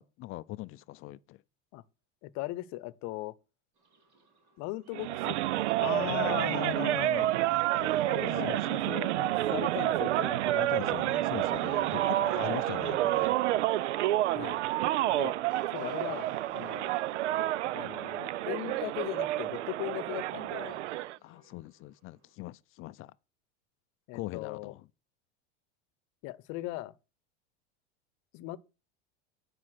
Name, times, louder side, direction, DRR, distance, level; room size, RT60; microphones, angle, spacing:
voice 1, 0.0-1.4 5.8-7.3 8.4-8.8 10.5-13.4 21.2-23.1 24.1-24.9, left 17 dB, 40° left, 0.4 m, -39 dB
voice 2, 2.2-3.3 4.6-5.4 7.8-11.0 14.3-14.6 15.1-15.3 15.7-16.9 17.7-20.8 24.1-24.7 26.2-26.9 28.3-28.6, left 18 dB, 55° left, 0.8 m, -39 dB
sound 1, 3.7-22.4, right 1 dB, 55° right, 4.7 m, -62 dB
sound 2, 4.9-21.2, right 15 dB, 85° right, 0.5 m, -29 dB
sound 3, 5.1-20.6, right 1 dB, 20° right, 2.2 m, -53 dB
9.6 x 5.3 x 6.4 m
hypercardioid pair, 100°, 34 cm